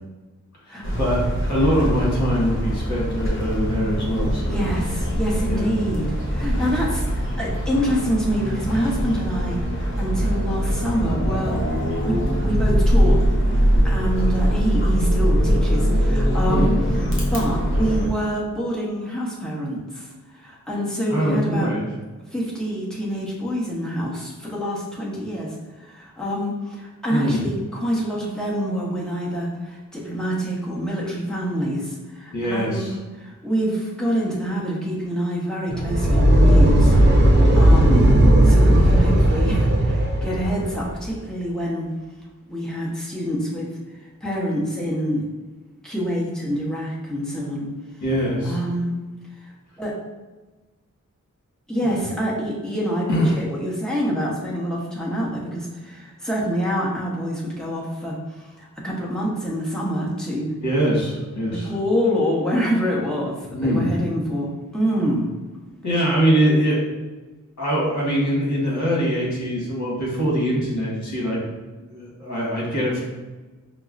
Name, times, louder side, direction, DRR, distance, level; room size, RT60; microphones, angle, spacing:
sound 1, 0.8-18.1, equal, 40° left, 0.8 m, -22 dB
voice 1, 1.5-4.7 5.5-5.7 16.5-16.8 21.1-21.9 27.1-27.4 32.3-32.9 37.9-38.2 48.0-48.6 51.8-51.9 53.1-53.4 60.6-61.7 63.5-63.9 65.8-66.8 67.6-71.4 71.7-73.0, equal, 65° left, -4 dB, 1.2 m, -23 dB
voice 2, 4.5-11.6 12.0-13.2 13.8-16.7 17.3-20.1 20.4-21.7 22.3-32.9 33.2-38.0 38.4-41.9 42.5-43.7 44.2-45.2 45.8-47.7 48.4-48.9 49.4-50.0 51.7-60.5 61.5-65.3, equal, ahead, -5 dB, 0.8 m, -26 dB
sound 2, 35.7-40.9, right 1 dB, 35° right, 0.5 m, -15 dB
5.2 x 2.0 x 2.4 m, 1.2 s
wide cardioid pair, 120°, 31 cm